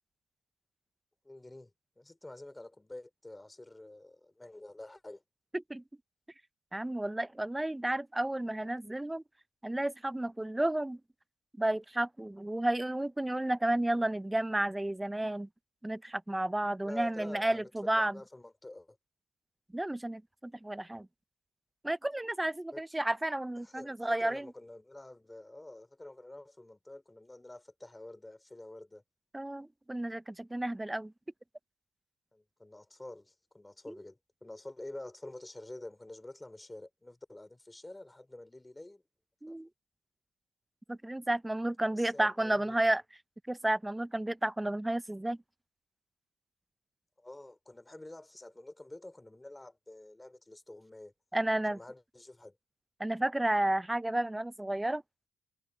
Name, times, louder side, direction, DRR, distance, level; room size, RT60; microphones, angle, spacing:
voice 1, 1.2-1.7 2.0-5.2 16.8-19.0 22.7-22.8 23.6-29.0 32.3-39.0 39.5-39.6 42.0-42.9 47.2-51.1 51.7-52.6, left 2 dB, 15° left, 2.8 m, -48 dB
voice 2, 5.5-5.8 6.7-9.2 9.6-11.0 11.6-15.5 15.8-18.2 19.7-21.1 21.8-24.5 29.3-31.1 33.9-34.0 39.4-39.7 40.9-43.0 43.5-45.4 51.3-51.8 53.0-55.0, right 1 dB, 10° right, 0.5 m, -32 dB
cardioid pair, 90°, 0 cm